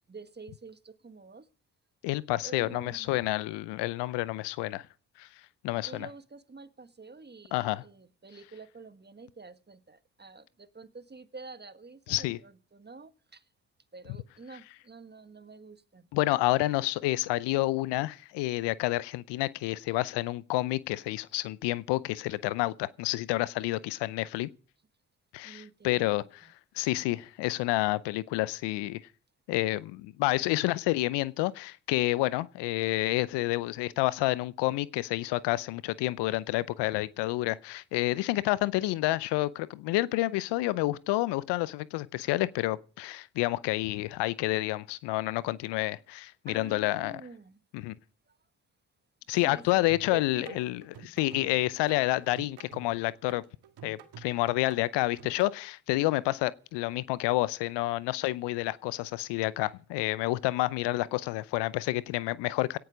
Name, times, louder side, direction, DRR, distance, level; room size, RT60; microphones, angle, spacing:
voice 1, 0.1-1.5 2.4-3.2 5.7-13.4 13.9-16.1 25.4-26.3 46.5-47.6 48.3-48.4 49.4-50.7, right 4 dB, 25° right, 1.4 m, -48 dB
voice 2, 2.0-4.9 5.2-5.3 5.6-6.1 7.5-7.8 12.1-12.4 16.1-24.5 25.3-26.5 26.7-29.0 29.5-47.2 47.7-47.9 49.3-53.4 53.8-62.8, left 18 dB, 75° left, 0.7 m, -29 dB
sound 1, 49.9-55.5, right 9 dB, 60° right, 1.7 m, -50 dB
17.5 x 11.5 x 5.0 m
hypercardioid pair, 45°, 43 cm